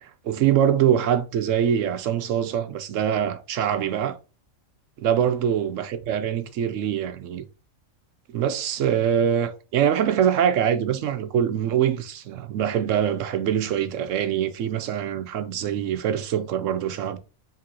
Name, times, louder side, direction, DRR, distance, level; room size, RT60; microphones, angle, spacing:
voice 1, 0.0-4.2 5.0-7.4 8.3-17.2, right 9 dB, 70° right, 0.9 m, -24 dB
5.1 x 3.1 x 2.8 m
omnidirectional pair, 1.4 m